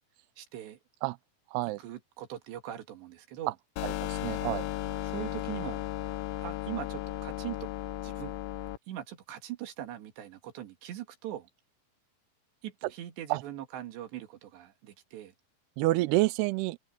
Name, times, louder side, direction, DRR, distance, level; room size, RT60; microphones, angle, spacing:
voice 1, 0.4-0.8 1.8-3.5 5.0-5.8 6.4-7.7 8.0-8.3 8.9-11.5 12.6-15.3, right 12 dB, 70° right, 4.2 m, -41 dB
sound 1, 3.8-8.8, left 15 dB, 85° left, 3.4 m, -35 dB
voice 2, 3.8-4.7 13.3-13.4 15.8-16.8, right 19 dB, 90° right, 2.4 m, -28 dB
open air
omnidirectional pair, 5.3 m